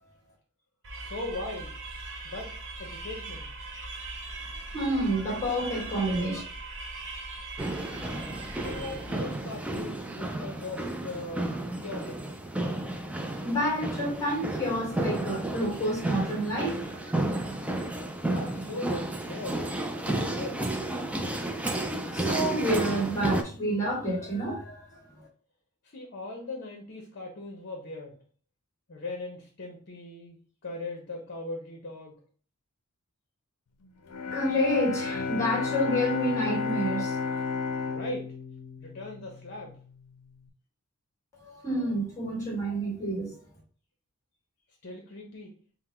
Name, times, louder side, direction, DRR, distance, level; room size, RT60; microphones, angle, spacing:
sound 1, 0.8-9.4, right 2 dB, 55° right, 0.8 m, -40 dB
voice 1, 1.0-1.8 2.2-3.5 8.6-12.2 18.3-19.7 19.9-20.7 25.8-28.2 28.9-30.4 30.6-32.2 37.9-38.3 38.8-39.8 44.8-45.5, left 2 dB, 50° left, 0.8 m, -39 dB
voice 2, 4.7-6.4 13.4-16.8 17.3-17.4 22.1-24.8 34.3-37.4 41.4-43.3, equal, 15° left, 1.5 m, -29 dB
sound 2, 7.6-23.4, right 2 dB, 5° right, 0.3 m, -32 dB
Bowed string instrument, 34.1-40.1, left 5 dB, 90° left, 0.5 m, -32 dB
3.9 x 2.1 x 4.3 m
head